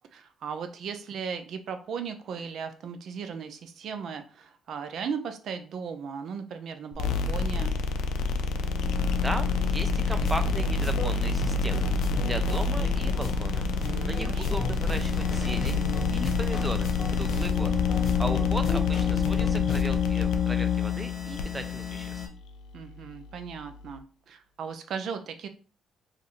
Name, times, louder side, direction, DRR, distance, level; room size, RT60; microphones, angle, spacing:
voice 1, 0.1-7.8 13.8-14.8 22.7-25.5, right 6 dB, 70° right, 8 dB, 0.5 m, -37 dB
sound 1, 6.9-24.0, left 3 dB, 85° left, 0.4 m, -30 dB
sound 2, 8.4-22.3, left 9 dB, 30° left, 1.3 m, -30 dB
voice 2, 9.2-11.9 12.2-13.7 14.1-15.8 16.1-17.7 18.2-22.3, right 1 dB, 15° right, 8 dB, 0.5 m, -36 dB
sound 3, 10.2-19.8, left 3 dB, 55° left, 0.9 m, -35 dB
2.5 x 2.5 x 4.2 m, 0.39 s
cardioid pair, 90°, 0 cm